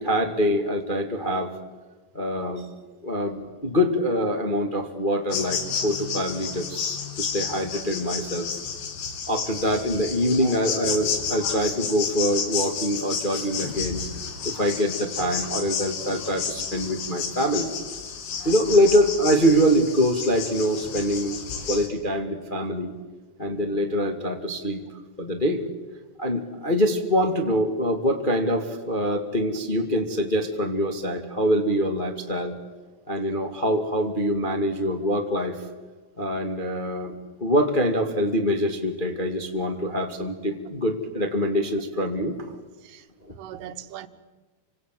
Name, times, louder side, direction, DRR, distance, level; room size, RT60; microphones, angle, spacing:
voice 1, 0.0-1.6 2.1-2.7 3.0-8.5 9.3-14.0 14.4-17.7 18.4-21.3 21.7-22.9 23.4-24.8 25.2-25.6 26.2-32.5 33.1-35.6 36.2-37.1 37.4-42.5 43.2-43.3, equal, 20° left, 1.2 m, -24 dB
sound 1, 5.3-21.9, left 6 dB, 90° left, 4.9 m, -31 dB
voice 2, 43.3-44.1, right 11 dB, 80° right, 3.1 m, -39 dB
30.0 x 25.5 x 7.7 m
omnidirectional pair, 4.7 m